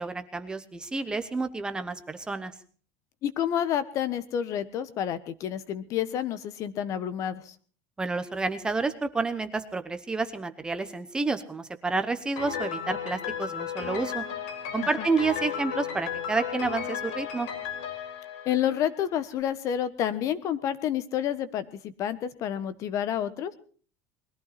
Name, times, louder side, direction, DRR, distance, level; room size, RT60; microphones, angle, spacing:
voice 1, 0.0-2.5 8.0-14.2 14.7-17.5, right 3 dB, 10° right, 9 dB, 1.0 m, -30 dB
voice 2, 3.2-7.5 15.0-15.1 18.4-23.5, left 10 dB, 35° left, 14 dB, 1.3 m, -29 dB
Piano, 12.4-19.2, left 8 dB, 75° left, 5.5 m, -34 dB
21.5 x 15.0 x 4.2 m, 0.42 s
cardioid pair, 180°, 9 cm